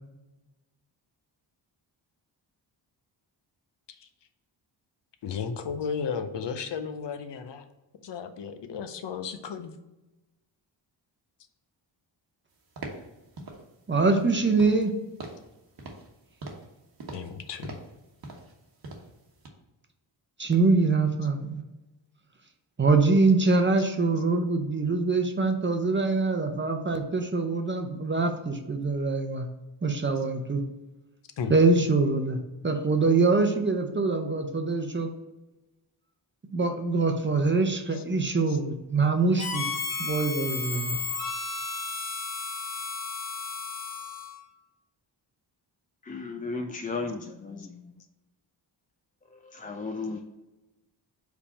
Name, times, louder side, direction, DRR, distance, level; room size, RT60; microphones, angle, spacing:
voice 1, 5.2-7.7 8.0-9.7 17.1-17.8 24.2-24.3 30.2-30.3 31.4-31.6 37.9-38.0 38.5-38.6 39.6-39.7, left 6 dB, 65° left, 8 dB, 0.7 m, -34 dB
sound 1, 12.8-13.1 13.4-13.6 14.0-14.3 14.6-14.9 15.2-15.5 15.8-16.1 16.4-16.7 17.0-17.3 17.6-18.0 18.2-18.5 18.8-19.1 19.4-19.5, right 2 dB, 50° right, 1.1 m, -41 dB
voice 2, 13.9-14.9 20.4-21.6 22.8-29.5 29.8-30.6 31.5-35.1 36.5-39.7 40.0-41.0, right 3 dB, 25° right, 5 dB, 0.6 m, -24 dB
Harmonica, 39.4-44.4, left 4 dB, 35° left, 1.4 m, -33 dB
voice 3, 46.1-47.7 49.5-50.2, left 3 dB, 20° left, 3 dB, 0.3 m, -34 dB
4.9 x 3.5 x 5.5 m, 1.0 s
wide cardioid pair, 125°, 46 cm